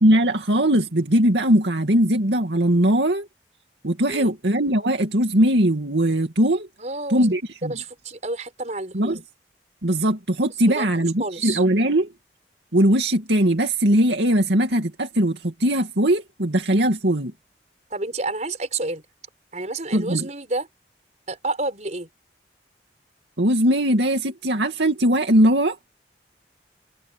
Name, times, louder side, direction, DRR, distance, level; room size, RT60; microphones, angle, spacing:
voice 1, 0.0-3.3 3.8-6.7 7.1-7.7 8.9-9.2 9.8-12.1 12.7-17.3 19.9-20.3 23.4-25.8, right 1 dB, 80° right, 2.4 m, -20 dB
voice 2, 6.8-7.3 7.6-9.2 10.7-11.6 17.9-19.0 19.5-20.7 21.3-22.1, right 3 dB, 40° right, 5.5 m, -29 dB
head